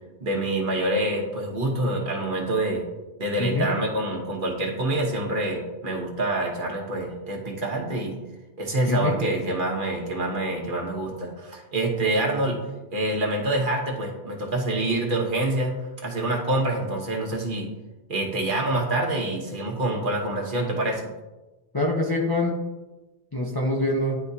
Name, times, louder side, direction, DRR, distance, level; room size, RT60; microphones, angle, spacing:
voice 1, 0.2-2.8 3.2-8.2 8.6-12.6 12.9-15.7 16.0-17.7 18.1-21.0, right 1 dB, 55° right, -1 dB, 1.2 m, -26 dB
voice 2, 21.7-22.6 23.3-24.2, left 2 dB, 25° left, -2 dB, 0.7 m, -24 dB
10.5 x 3.5 x 2.7 m, 1.1 s
omnidirectional pair, 1.1 m